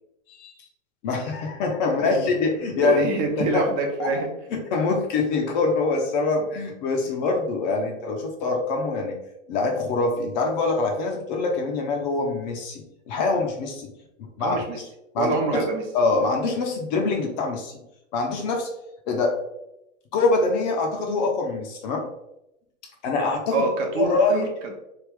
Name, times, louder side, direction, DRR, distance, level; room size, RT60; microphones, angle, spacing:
voice 1, 1.0-3.0 3.4-3.7 4.0-4.2 4.5-9.2 9.5-13.9 14.2-14.6 15.1-15.6 15.9-17.8 18.1-18.7 19.1-19.4 20.1-22.1 23.0-23.7 24.0-24.5, left 3 dB, 35° left, 2 dB, 0.5 m, -24 dB
voice 2, 2.8-4.3 7.8-8.0 14.4-14.8 15.2-15.8 23.5-24.7, right 3 dB, 35° right, 3 dB, 0.6 m, -26 dB
3.2 x 2.4 x 3.4 m, 0.86 s
hypercardioid pair, 130°, 39 cm